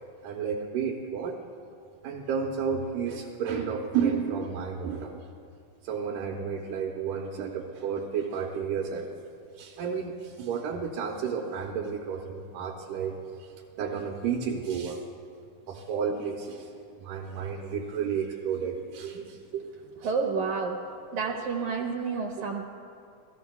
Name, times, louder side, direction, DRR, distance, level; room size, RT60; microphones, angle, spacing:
voice 1, 0.2-1.4 2.0-5.2 5.8-9.2 9.6-15.0 15.7-16.7 17.0-19.7, right 6 dB, 90° right, -1 dB, 2.5 m, -32 dB
voice 2, 20.0-20.8 21.1-22.7, right 5 dB, 75° right, 1 dB, 2.2 m, -29 dB
28.0 x 17.5 x 2.3 m, 2.4 s
omnidirectional pair, 3.6 m